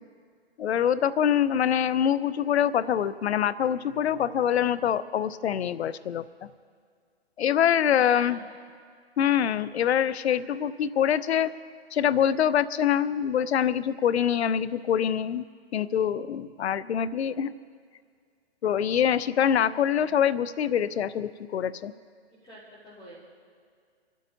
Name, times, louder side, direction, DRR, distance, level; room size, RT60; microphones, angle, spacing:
voice 1, 0.6-6.5 7.4-8.4 9.2-11.5 11.9-15.4 15.7-17.5 18.6-21.9, left 9 dB, 75° left, 15 dB, 0.6 m, -25 dB
voice 2, 8.1-8.6 19.8-20.1 22.4-23.2, right 1 dB, 15° left, -12 dB, 3.4 m, -47 dB
29.0 x 12.0 x 2.7 m, 2.1 s
hypercardioid pair, 135°, 33 cm